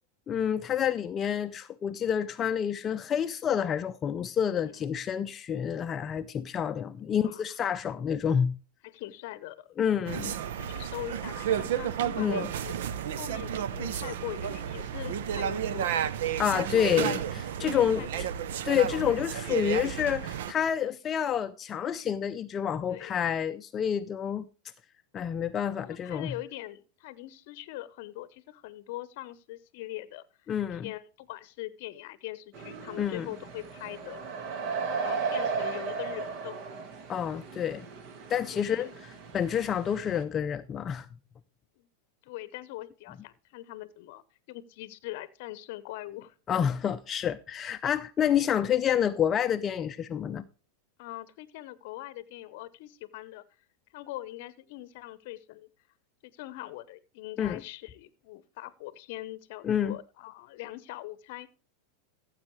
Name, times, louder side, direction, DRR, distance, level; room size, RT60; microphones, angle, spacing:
voice 1, 0.3-8.5 9.8-10.4 12.2-12.5 16.4-18.0 18.6-24.5 25.1-26.3 30.5-30.9 33.0-33.3 37.1-37.9 38.3-38.9 39.3-41.1 46.5-50.5 57.4-57.6 59.6-60.0, left 9 dB, 30° left, 0.5 m, -28 dB
voice 2, 7.1-7.6 8.8-9.7 10.6-16.0 16.5-17.1 17.6-18.3 18.9-19.7 22.9-23.2 25.8-30.3 30.7-34.4 34.9-36.7 38.5-39.0 41.8-41.9 42.2-46.3 51.0-53.4 53.9-55.7 56.2-61.5, left 16 dB, 60° left, 0.7 m, -42 dB
sound 1, 10.1-20.5, right 9 dB, 70° right, 0.7 m, -32 dB
sound 2, 32.5-40.2, right 5 dB, 50° right, 1.5 m, -36 dB
15.0 x 7.4 x 3.1 m
hypercardioid pair, 100°, 0 cm